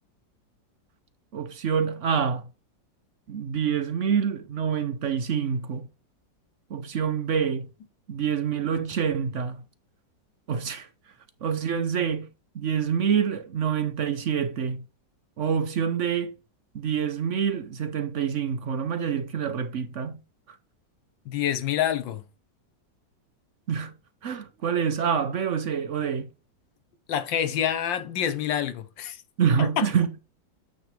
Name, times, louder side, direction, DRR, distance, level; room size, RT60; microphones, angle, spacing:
voice 1, 1.3-2.5 3.3-5.9 6.7-7.7 8.1-9.6 10.5-10.9 11.4-12.3 12.5-14.8 15.4-16.3 16.7-20.2 23.7-23.9 24.2-26.3 29.4-30.2, right 7 dB, 60° right, 0.8 m, -26 dB
voice 2, 21.3-22.2 27.1-29.2 29.6-29.9, left 10 dB, 90° left, 1.6 m, -27 dB
9.1 x 3.1 x 5.1 m
omnidirectional pair, 2.0 m